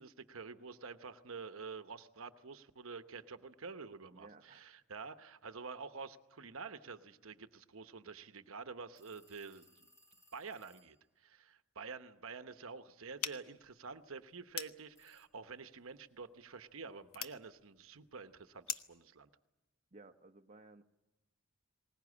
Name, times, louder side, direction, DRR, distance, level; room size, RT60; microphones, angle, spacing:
voice 1, 0.0-9.9 10.3-19.3, right 4 dB, 65° right, 10 dB, 1.0 m, -48 dB
voice 2, 4.1-4.7 19.9-20.8, right 2 dB, 30° right, 4 dB, 0.8 m, -57 dB
sound 1, 9.0-11.1 15.0-15.3, equal, 15° left, 1.5 m, -67 dB
sound 2, 13.2-19.0, left 10 dB, 70° left, 1.0 m, -46 dB
20.5 x 19.5 x 9.7 m, 1.0 s
head